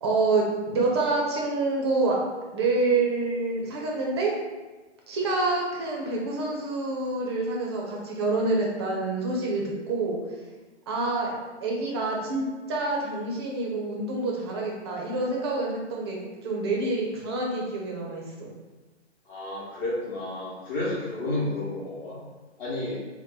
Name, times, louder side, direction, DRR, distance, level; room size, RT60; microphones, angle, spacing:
voice 1, 0.0-2.2 2.5-4.3 5.1-10.2 10.9-18.5, right 3 dB, 25° right, -2 dB, 0.4 m, -27 dB
voice 2, 19.3-22.2 22.6-23.0, left 2 dB, 50° left, -8 dB, 0.9 m, -31 dB
2.8 x 2.1 x 3.7 m, 1.2 s
hypercardioid pair, 130°, 36 cm